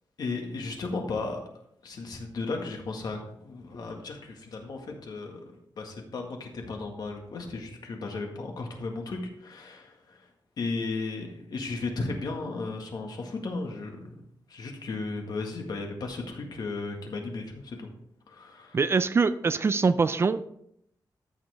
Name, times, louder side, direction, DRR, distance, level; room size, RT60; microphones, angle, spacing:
voice 1, 0.2-1.4 1.8-5.4 5.8-10.3 10.6-14.1 14.5-17.9 18.3-18.8, left 3 dB, 60° left, 2 dB, 1.8 m, -35 dB
voice 2, 18.7-20.5, right 4 dB, 35° right, 13 dB, 0.4 m, -23 dB
13.5 x 5.9 x 3.5 m, 0.73 s
wide cardioid pair, 160°, 8 cm